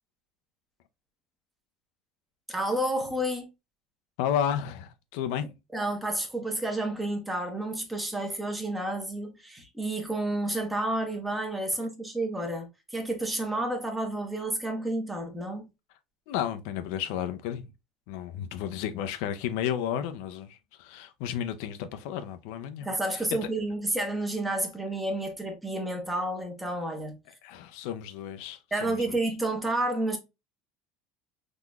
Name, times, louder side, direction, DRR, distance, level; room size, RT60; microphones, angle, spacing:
voice 1, 2.5-3.5 5.7-15.7 22.8-27.2 28.7-30.2, right 1 dB, 10° right, 0.9 m, -30 dB
voice 2, 4.2-5.5 16.3-17.7 18.1-23.2 27.4-29.2, left 9 dB, 80° left, 0.5 m, -32 dB
3.7 x 2.9 x 2.3 m
cardioid pair, 145°, 0 cm